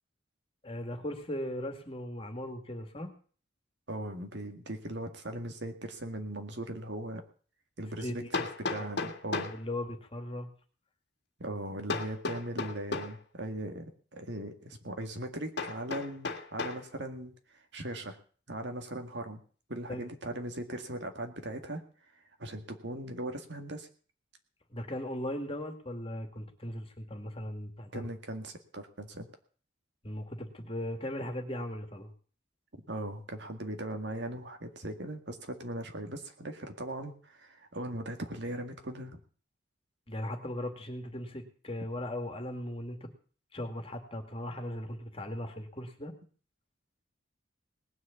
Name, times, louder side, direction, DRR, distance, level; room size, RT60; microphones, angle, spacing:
voice 1, 0.6-3.1 8.0-8.3 8.8-9.0 9.5-10.5 19.9-20.0 24.7-28.1 30.0-32.1 40.1-43.1 43.5-46.1, left 1 dB, 30° left, 5 dB, 2.2 m, -38 dB
voice 2, 3.9-7.2 7.8-9.5 11.4-18.2 18.5-19.4 19.7-21.8 22.4-23.9 27.9-29.3 32.9-39.2, right 1 dB, 60° right, 5 dB, 2.0 m, -39 dB
Hammer, 8.3-9.6 11.9-13.2 15.6-16.8, left 3 dB, 60° left, 1.8 m, -35 dB
19.5 x 6.6 x 8.3 m, 0.43 s
head